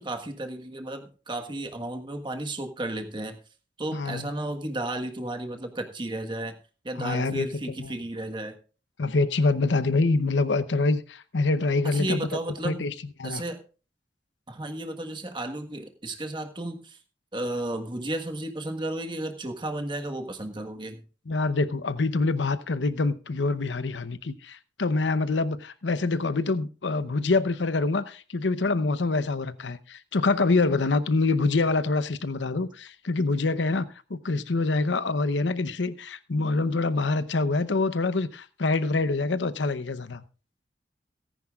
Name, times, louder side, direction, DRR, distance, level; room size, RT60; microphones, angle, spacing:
voice 1, 0.0-3.4 3.8-6.5 6.8-8.5 11.8-12.9 13.2-13.6 14.5-17.0 17.3-21.0, right 1 dB, 25° right, 1.4 m, -33 dB
voice 2, 3.9-4.3 7.0-7.5 7.8-7.9 9.0-12.2 12.6-12.9 13.2-13.4 21.3-40.2, left 3 dB, 90° left, 0.8 m, -25 dB
18.0 x 10.5 x 2.4 m
head